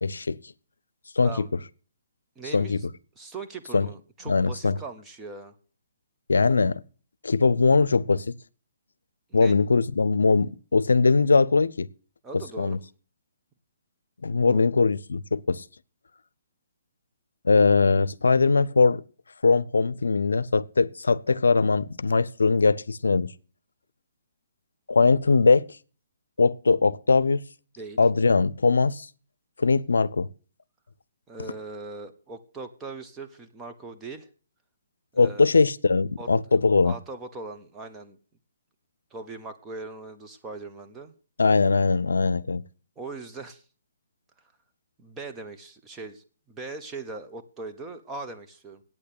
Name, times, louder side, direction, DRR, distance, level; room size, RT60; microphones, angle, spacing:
voice 1, 0.0-0.4 1.2-1.5 2.5-2.8 3.7-3.9 4.3-4.8 6.3-6.8 7.2-8.3 9.3-11.9 12.3-12.8 14.2-15.6 17.4-19.0 19.4-23.3 24.9-25.6 26.4-27.4 28.0-29.1 29.6-30.3 35.2-36.9 41.4-42.6, left 4 dB, 90° left, 0.5 m, -21 dB
voice 2, 2.4-2.8 3.2-5.5 9.3-9.6 12.2-12.8 14.5-14.7 27.8-28.0 31.3-34.3 35.2-35.5 36.2-38.2 39.1-41.1 43.0-43.6 45.0-48.8, right 3 dB, 15° right, 1.2 m, -40 dB
8.9 x 8.5 x 8.3 m
hypercardioid pair, 145°, 0 cm